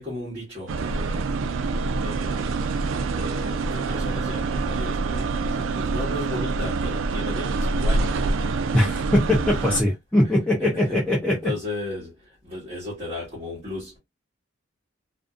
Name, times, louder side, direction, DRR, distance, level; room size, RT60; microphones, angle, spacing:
voice 1, 0.0-1.3 2.0-2.5 2.9-8.4 9.5-9.7 10.6-11.0 11.3-14.0, left 2 dB, 35° right, 1.2 m, -35 dB
sound 1, 0.7-9.8, right 3 dB, 75° right, 0.3 m, -26 dB
voice 2, 8.7-11.5, left 1 dB, 5° left, 0.5 m, -21 dB
2.5 x 2.5 x 2.3 m
head